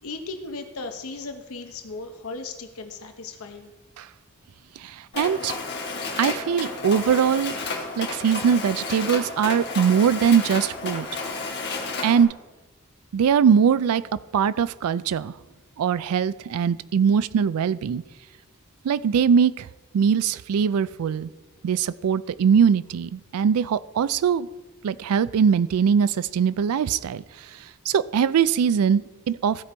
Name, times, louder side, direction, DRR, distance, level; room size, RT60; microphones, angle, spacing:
voice 1, 0.0-3.7, left 3 dB, 75° left, 5 dB, 0.9 m, -36 dB
voice 2, 4.8-5.6 6.2-7.6 8.0-11.1 12.0-12.3 13.1-14.0 14.3-15.3 15.8-18.0 18.8-19.7 19.9-21.3 21.6-24.5 24.8-27.2 27.9-29.6, right 7 dB, 85° right, 17 dB, 0.3 m, -21 dB
Mechanisms, 5.1-12.2, left 3 dB, 50° left, 1.4 m, -32 dB
15.5 x 5.2 x 4.4 m, 1.2 s
head